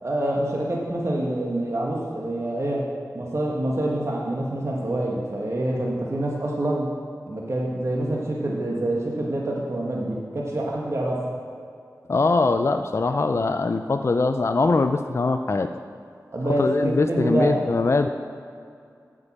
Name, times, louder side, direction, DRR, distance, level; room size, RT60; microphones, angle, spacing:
voice 1, 0.0-2.8 3.1-6.9 7.3-11.2 16.3-17.6, right 1 dB, 45° right, -3 dB, 1.2 m, -26 dB
voice 2, 12.1-15.7 16.5-18.1, left 3 dB, 45° left, 8 dB, 0.4 m, -22 dB
8.2 x 5.2 x 7.3 m, 2.4 s
wide cardioid pair, 55°, 6 cm